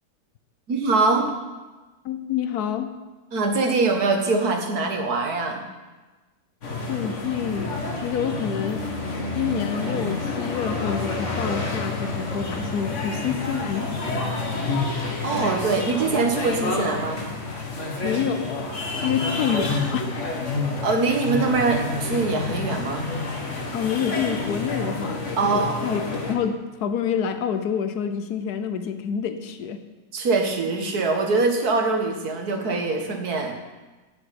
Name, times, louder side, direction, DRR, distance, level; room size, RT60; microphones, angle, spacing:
voice 1, 0.7-1.3 3.3-5.7 15.0-17.3 20.8-23.1 25.4-25.8 30.1-33.6, right 3 dB, 80° right, 4 dB, 2.1 m, -23 dB
voice 2, 2.0-2.9 6.9-8.8 9.3-13.9 18.0-20.5 23.7-29.8, left 8 dB, 90° left, 9 dB, 1.3 m, -28 dB
sound 1, 6.6-26.4, left 3 dB, 50° left, 2.1 m, -29 dB
11.5 x 7.8 x 8.7 m, 1.2 s
omnidirectional pair, 1.6 m